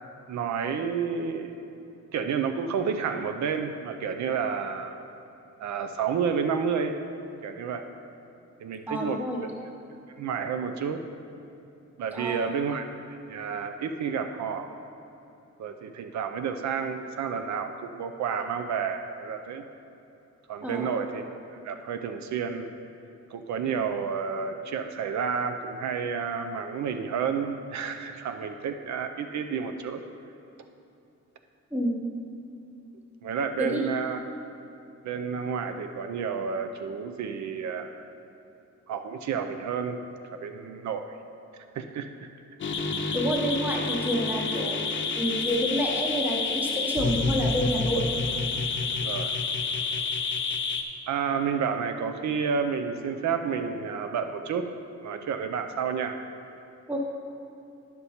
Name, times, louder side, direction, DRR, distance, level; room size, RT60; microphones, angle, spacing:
voice 1, 0.3-1.6 2.1-5.0 5.6-7.0 7.4-7.9 8.6-9.2 10.2-11.0 12.0-12.8 13.3-14.7 15.6-19.6 20.5-21.2 21.6-22.7 23.3-30.0 33.2-34.2 35.0-38.0 38.9-40.0 40.4-41.2 41.7-42.3 43.1-43.2 48.9-49.3 51.1-54.6 55.0-56.2, right 6 dB, 70° right, 7 dB, 0.5 m, -30 dB
voice 2, 8.9-9.4 12.1-12.5 20.6-20.9 31.7-32.1 33.6-33.9 43.1-44.8 45.1-48.1 56.9-57.0, equal, 5° right, -2 dB, 0.9 m, -28 dB
sound 1, 42.6-50.8, left 4 dB, 40° left, 0.6 m, -29 dB
9.6 x 6.8 x 4.3 m, 2.7 s
wide cardioid pair, 175°, 29 cm